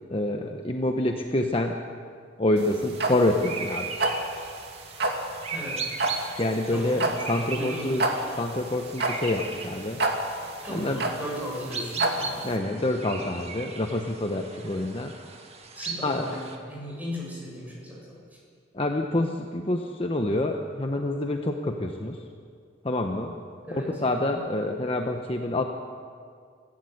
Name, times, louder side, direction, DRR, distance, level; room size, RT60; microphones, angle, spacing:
voice 1, 0.1-1.8 2.4-3.9 6.4-8.0 8.4-10.0 10.7-11.0 12.4-15.1 16.0-16.3 18.7-22.2 22.8-23.4 23.7-25.6, left 1 dB, 30° left, 3 dB, 1.1 m, -27 dB
sound 1, 2.6-12.5, right 2 dB, 55° right, 2.4 m, -29 dB
sound 2, 2.9-16.6, right 5 dB, 35° right, 1.9 m, -38 dB
voice 2, 5.5-5.9 6.7-7.1 7.5-8.1 10.6-12.8 15.7-18.4 18.9-19.4 23.6-24.4, equal, 10° right, -3 dB, 6.7 m, -37 dB
24.5 x 15.5 x 8.1 m, 2.2 s
head